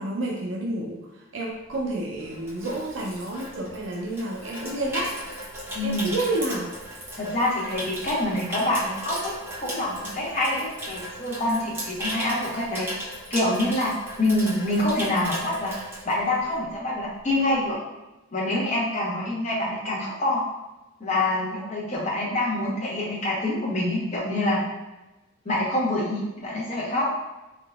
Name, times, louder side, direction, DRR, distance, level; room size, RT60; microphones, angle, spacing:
voice 1, 0.0-5.2 5.8-6.7, right 1 dB, 65° right, -1 dB, 0.5 m, -30 dB
Water tap faucet / Sink (filling or washing), 1.7-16.7 17.0-17.3, equal, 10° right, 0.8 m, -36 dB
voice 2, 5.7-6.1 7.2-12.9 13.3-15.7 16.0-17.8 18.3-20.4 21.0-24.6 25.4-27.1, left 1 dB, 35° left, -5 dB, 1.0 m, -26 dB
3.7 x 3.5 x 2.3 m, 1.0 s
head